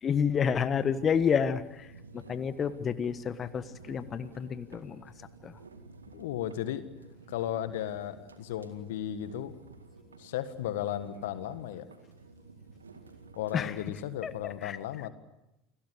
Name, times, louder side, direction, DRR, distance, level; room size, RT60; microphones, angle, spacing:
voice 1, 0.0-1.9 2.1-5.0 5.4-5.5 13.5-13.7 14.2-14.8, left 7 dB, 35° left, 13 dB, 1.4 m, -29 dB
sound 1, 0.7-14.6, right 3 dB, 85° right, 2.0 m, -52 dB
voice 2, 6.1-6.8 7.3-9.6 10.2-11.9 13.4-15.1, left 11 dB, 70° left, 12 dB, 1.6 m, -35 dB
29.0 x 20.5 x 8.2 m, 0.90 s
figure-of-eight pair, 70°, 0 cm